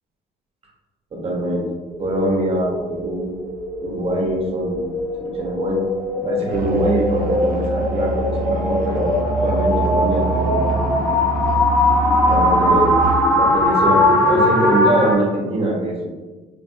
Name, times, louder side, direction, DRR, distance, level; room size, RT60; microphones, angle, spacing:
voice 1, 1.1-1.7 2.0-3.4 3.8-4.9 5.2-11.2 12.3-13.0 13.3-16.1, right 1 dB, 35° right, -1 dB, 0.9 m, -23 dB
sound 1, 1.9-15.2, left 1 dB, 10° left, 0.5 m, -20 dB
Musical instrument, 6.5-13.4, right 3 dB, 55° right, 0.4 m, -26 dB
3.9 x 2.5 x 2.6 m, 1.2 s
cardioid pair, 110°, 17 cm